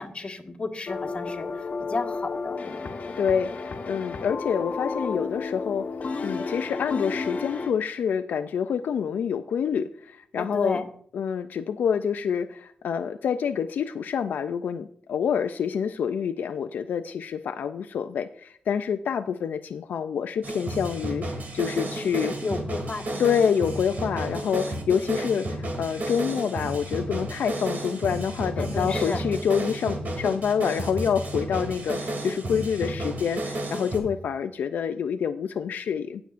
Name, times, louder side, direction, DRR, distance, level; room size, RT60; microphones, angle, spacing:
voice 1, 0.0-2.9 10.4-10.9 22.4-23.2 28.6-29.2, left 3 dB, 40° left, 4 dB, 1.5 m, -33 dB
sound 1, 0.9-7.7, left 4 dB, 60° left, 1.2 m, -32 dB
voice 2, 3.2-5.9 6.2-10.8 11.1-21.2 21.5-22.4 23.2-36.2, left 7 dB, 85° left, 9 dB, 0.4 m, -27 dB
sound 2, 20.4-34.0, right 1 dB, 70° right, 2.7 m, -32 dB
19.5 x 6.9 x 2.5 m, 0.63 s
cardioid pair, 85°, 3 cm